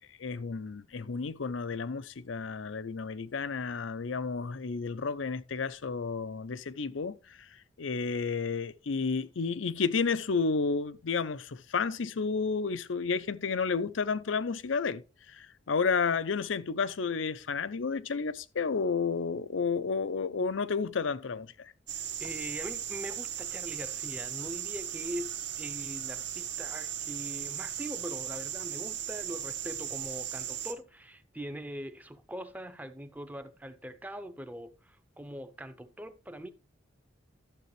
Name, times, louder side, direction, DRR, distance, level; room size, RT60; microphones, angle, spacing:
voice 1, 0.2-7.5 7.8-15.0 15.3-21.7, left 5 dB, 80° left, 0.6 m, -31 dB
sound 1, 21.9-30.7, right 10 dB, 60° right, 1.4 m, -37 dB
voice 2, 22.2-36.5, right 1 dB, 10° right, 0.7 m, -42 dB
12.0 x 7.5 x 3.2 m
head